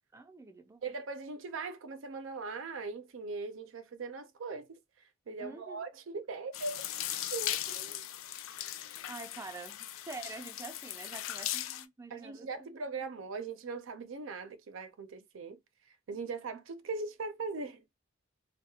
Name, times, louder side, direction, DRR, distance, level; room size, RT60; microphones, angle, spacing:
voice 1, 0.1-1.0 5.4-5.8 9.1-12.8, right 3 dB, 15° right, 0.4 m, -47 dB
voice 2, 0.8-4.8 5.3-6.9 7.3-8.0 12.1-15.6 16.1-17.8, right 4 dB, 70° right, 0.5 m, -40 dB
sound 1, 6.5-11.8, left 12 dB, 85° left, 0.4 m, -38 dB
2.3 x 2.1 x 2.7 m
head